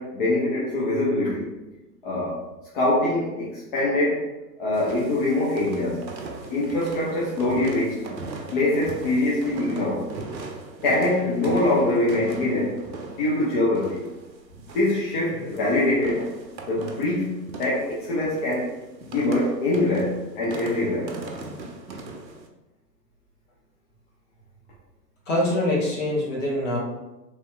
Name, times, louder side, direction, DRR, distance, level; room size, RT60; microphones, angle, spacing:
voice 1, 0.0-1.6 2.0-2.4 2.7-4.3 4.6-6.0 6.5-8.0 8.5-10.1 10.8-12.8 13.2-14.1 14.7-16.3 16.7-18.7 19.1-21.1, left 2 dB, 30° left, -7 dB, 0.6 m, -24 dB
sound 1, 4.7-22.5, right 3 dB, 80° right, 0.6 m, -39 dB
voice 2, 25.3-26.8, left 1 dB, 50° left, -3 dB, 1.2 m, -24 dB
3.1 x 2.8 x 2.2 m, 1.0 s
figure-of-eight pair, 110°, 50 cm